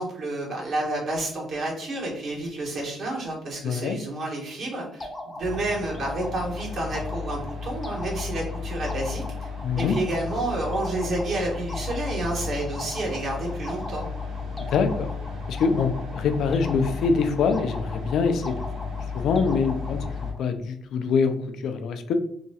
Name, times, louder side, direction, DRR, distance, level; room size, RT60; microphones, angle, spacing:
voice 1, 0.0-5.1 5.3-9.5 9.7-14.1, right 2 dB, 65° right, -3 dB, 1.3 m, -30 dB
voice 2, 3.6-4.0 9.6-9.9 14.6-15.1 15.5-18.6 19.1-20.0 20.4-21.4 21.6-22.1, left 5 dB, 75° left, 8 dB, 0.3 m, -24 dB
sound 1, 5.0-20.4, left 1 dB, 20° left, 0.6 m, -40 dB
sound 2, 5.4-20.3, left 5 dB, 90° right, 0.8 m, -34 dB
2.8 x 2.3 x 2.7 m, 0.68 s
cardioid pair, 90°, 0 cm